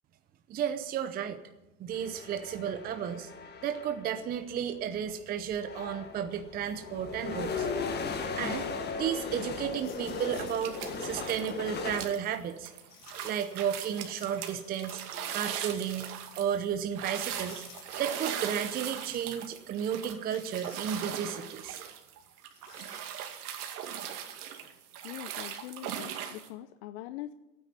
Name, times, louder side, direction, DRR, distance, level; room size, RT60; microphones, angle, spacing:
voice 1, 0.5-1.4 1.8-3.3 3.6-7.7 8.3-8.7 9.0-12.7 13.2-15.0 15.3-16.1 16.3-17.6 18.0-21.8, right 9 dB, 20° right, 8 dB, 0.7 m, -33 dB
sound 1, 1.9-4.2 5.1-5.2 5.5-12.0, left 4 dB, 20° left, 1.5 m, -37 dB
sound 2, 9.7-11.6 12.9-15.4 15.7-15.8 17.3-19.3 20.2-21.4 22.4-23.4, left 7 dB, 85° left, 3.1 m, -55 dB
sound 3, 10.5-11.6 11.9-26.5, right 9 dB, 65° right, 2.4 m, -39 dB
voice 2, 25.0-27.3, left 14 dB, 45° left, 11 dB, 0.7 m, -43 dB
13.0 x 9.3 x 9.5 m, 1.0 s
hypercardioid pair, 130°, 48 cm